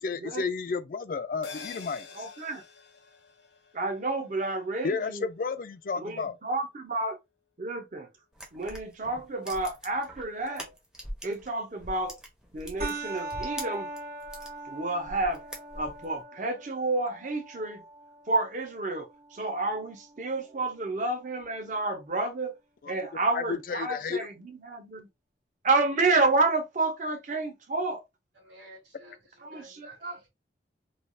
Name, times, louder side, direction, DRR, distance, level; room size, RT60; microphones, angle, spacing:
voice 1, 0.0-2.0 4.8-6.4 22.8-22.9 23.3-24.3, left 4 dB, 50° left, 0.3 m, -32 dB
sound 1, 1.4-6.1 6.5-6.6, left 4 dB, 85° left, 0.7 m, -48 dB
voice 2, 2.1-2.6 3.7-5.2 6.0-7.2 7.6-8.1 8.5-10.7 11.2-12.2 12.5-13.9 14.7-15.5 15.7-17.8 18.3-22.5 22.9-25.1 25.6-28.0 29.4-30.2, right 2 dB, 45° right, 0.6 m, -30 dB
sound 2, 8.3-11.5 11.8-14.5 15.0-16.1, equal, 5° right, 0.5 m, -42 dB
sound 3, 12.8-21.8, right 2 dB, 60° right, 1.4 m, -41 dB
voice 3, 28.3-30.3, right 1 dB, 85° right, 0.9 m, -53 dB
3.2 x 2.3 x 2.6 m
head